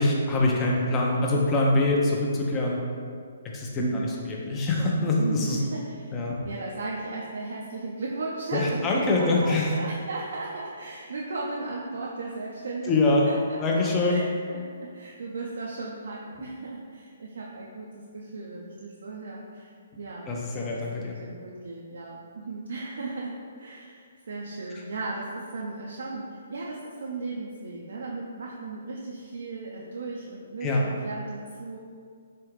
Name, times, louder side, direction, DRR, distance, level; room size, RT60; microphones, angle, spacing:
voice 1, 0.0-2.8 3.5-3.8 4.3-5.6 6.1-6.4 8.5-9.7 12.9-13.3 13.6-14.3 20.3-21.1 30.6-30.8, left 2 dB, 20° left, -2 dB, 0.6 m, -24 dB
voice 2, 3.8-4.1 5.2-6.1 6.4-14.6 14.9-20.3 20.7-31.8, right 3 dB, 65° right, -3 dB, 0.4 m, -36 dB
3.7 x 3.3 x 3.1 m, 2.2 s
figure-of-eight pair, 130°, 0 cm